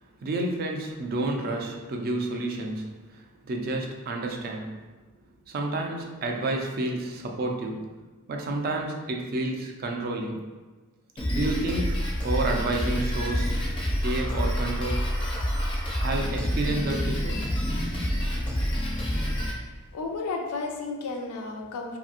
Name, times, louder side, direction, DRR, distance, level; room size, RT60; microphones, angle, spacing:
voice 1, 0.2-4.8 5.5-7.9 8.3-10.4 11.3-12.0 12.2-13.6 14.0-15.1 16.0-17.4, right 2 dB, 40° right, 2 dB, 0.3 m, -30 dB
Drum kit, 11.2-19.5, equal, 25° left, 0.4 m, -27 dB
voice 2, 19.9-22.0, left 3 dB, 80° left, 2 dB, 0.4 m, -32 dB
2.7 x 2.6 x 2.4 m, 1.3 s
head